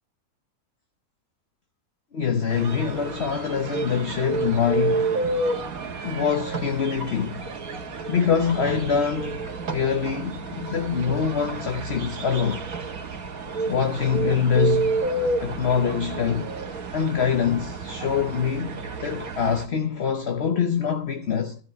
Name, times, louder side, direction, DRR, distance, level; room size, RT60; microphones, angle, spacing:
voice 1, 2.1-5.2 6.0-7.5 8.1-9.4 9.7-12.7 13.7-15.0 15.4-16.6 16.9-21.6, left 7 dB, 50° left, 1.1 m, -24 dB
sound 1, 2.5-19.7, right 3 dB, 70° right, 1.8 m, -30 dB
13.5 x 6.5 x 9.1 m
omnidirectional pair, 1.6 m